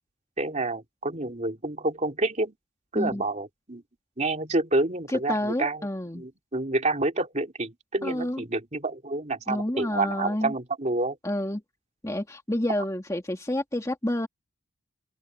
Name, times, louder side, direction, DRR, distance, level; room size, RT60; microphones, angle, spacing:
voice 1, 0.4-2.5 2.9-3.8 4.2-5.9 6.1-11.2, right 2 dB, 35° right, 3.2 m, -28 dB
voice 2, 5.1-6.2 8.0-8.4 9.5-10.5 11.2-11.6 12.0-14.3, left 1 dB, 15° left, 2.0 m, -29 dB
open air
head